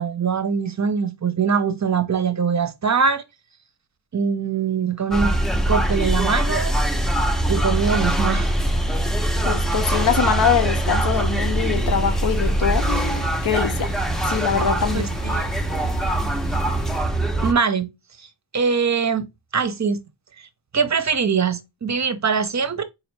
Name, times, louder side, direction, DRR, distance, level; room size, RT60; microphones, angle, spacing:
voice 1, 0.0-3.2 4.1-5.3 5.6-6.7 7.5-8.5 15.2-15.4 17.4-17.9 18.2-18.3 18.5-19.3 19.5-20.0 20.4-20.5 20.7-22.8, right 6 dB, 40° right, 0.7 m, -22 dB
sound 1, 5.1-17.5, right 1 dB, ahead, 0.6 m, -22 dB
voice 2, 9.5-13.9 14.3-15.1, left 7 dB, 50° left, 0.6 m, -23 dB
sound 2, 11.7-17.0, left 3 dB, 80° left, 0.8 m, -42 dB
4.1 x 2.6 x 3.2 m
wide cardioid pair, 50°, 45 cm